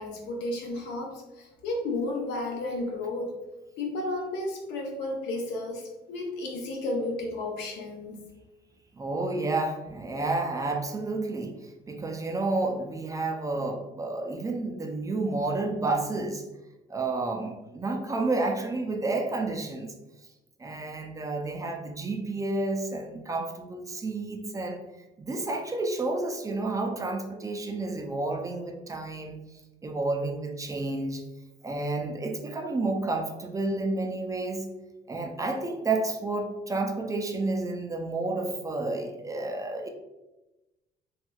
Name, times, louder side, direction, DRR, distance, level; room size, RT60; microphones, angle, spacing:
voice 1, 0.0-3.3 3.8-8.2, left 2 dB, 85° left, 0 dB, 0.8 m, -33 dB
voice 2, 8.9-16.5 16.9-19.9 20.6-24.8 25.2-29.4 29.8-31.2 31.6-34.7 35.1-39.9, right 2 dB, 20° right, 4 dB, 0.3 m, -30 dB
3.0 x 3.0 x 2.3 m, 1.0 s
cardioid pair, 110°, 17 cm